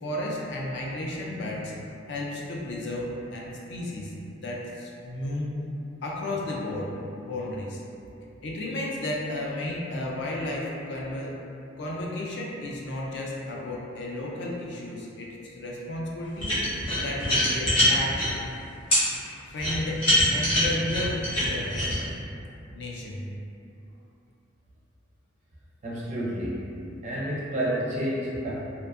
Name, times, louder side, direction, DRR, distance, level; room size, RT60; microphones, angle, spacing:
voice 1, 0.0-1.7 2.1-5.6 6.0-7.8 8.4-11.4 11.8-16.5 16.9-18.3 19.0-21.8 22.7-23.3, left 1 dB, 55° left, -3 dB, 0.4 m, -33 dB
sound 1, 16.4-18.3 18.9-19.0 19.6-22.0, left 1 dB, 25° left, 0.7 m, -23 dB
voice 2, 25.8-26.6 27.0-28.6, right 1 dB, 35° right, -6 dB, 0.4 m, -29 dB
2.5 x 2.2 x 2.4 m, 2.6 s
head